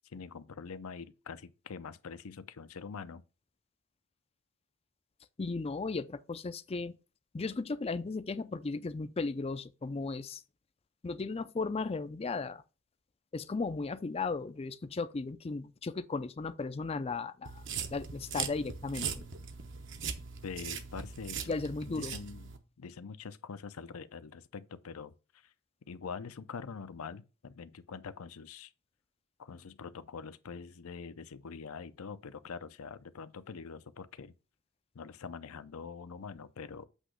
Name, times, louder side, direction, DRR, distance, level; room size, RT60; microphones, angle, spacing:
voice 1, 0.0-3.2 20.4-21.5 21.9-25.5 25.9-28.7 29.4-34.3 34.9-36.9, left 5 dB, 75° left, 0.5 m, -44 dB
voice 2, 5.4-6.9 7.3-10.4 11.0-12.6 13.3-17.6 17.9-19.2 21.5-22.1, left 3 dB, 25° left, 0.4 m, -36 dB
sound 1, 17.5-22.6, right 6 dB, 55° right, 0.9 m, -40 dB
8.1 x 3.0 x 6.2 m
head